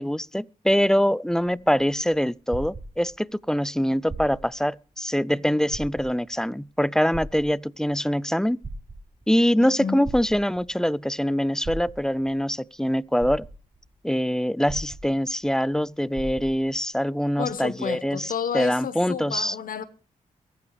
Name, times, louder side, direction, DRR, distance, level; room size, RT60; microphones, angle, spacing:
voice 1, 0.0-8.6 9.3-13.5 14.0-19.6, equal, 5° left, 0.5 m, -24 dB
sound 1, 1.5-3.4 4.0-4.7 5.1-5.2 5.7-6.4 7.1-7.9 8.5-9.3 10.0-10.8 11.6-12.3 12.9-13.0 13.2-13.9 14.7-15.5 15.7-15.8 16.1-16.8 17.5-17.6, right 2 dB, 35° right, 3.6 m, -38 dB
voice 2, 9.6-10.0 17.4-19.8, left 7 dB, 70° left, 1.1 m, -31 dB
23.0 x 8.5 x 3.3 m
cardioid pair, 55°, 15 cm